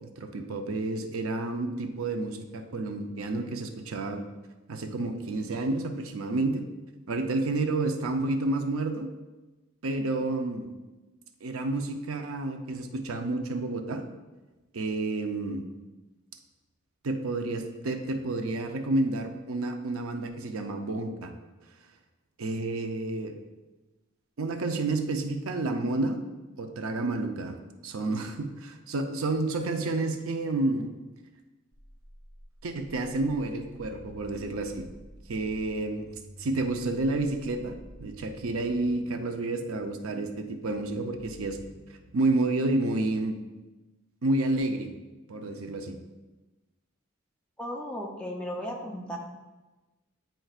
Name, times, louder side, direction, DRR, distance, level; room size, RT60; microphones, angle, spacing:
voice 1, 0.0-4.2 4.7-6.6 7.1-9.1 9.8-10.7 11.4-14.0 14.7-15.7 17.0-21.3 22.4-23.4 24.4-26.2 26.6-27.6 27.8-30.9 32.6-34.8 35.3-36.1 36.4-41.6 42.1-43.4 44.2-44.9 45.3-46.0, right 2 dB, 80° right, 5 dB, 0.6 m, -30 dB
sound 1, 31.7-42.1, equal, 20° right, 1.2 m, -51 dB
voice 2, 47.6-49.2, equal, 5° left, -2 dB, 0.6 m, -35 dB
9.1 x 4.4 x 2.4 m, 1.1 s
head